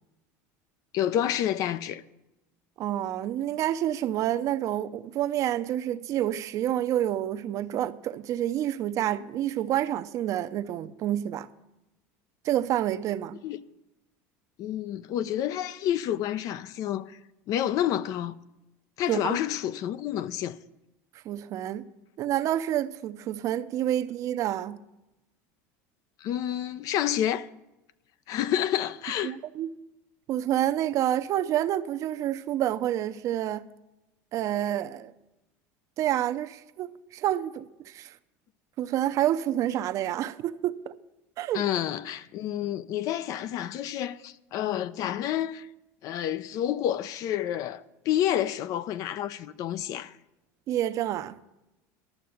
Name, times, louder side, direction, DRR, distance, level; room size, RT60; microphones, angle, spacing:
voice 1, 0.9-2.0 13.4-13.6 14.6-17.2 17.5-18.4 19.0-20.6 26.2-27.5 28.3-29.4 41.5-45.7 46.0-50.1, left 11 dB, 50° left, 0.5 m, -29 dB
voice 2, 2.8-11.5 12.4-13.4 19.1-19.4 21.3-21.9 22.2-24.8 29.2-29.8 30.3-33.7 34.3-35.1 36.0-38.1 38.8-40.9 41.4-41.6 50.7-51.4, right 12 dB, 50° right, 0.6 m, -28 dB
12.0 x 6.7 x 7.8 m
supercardioid pair, 120°, 7 cm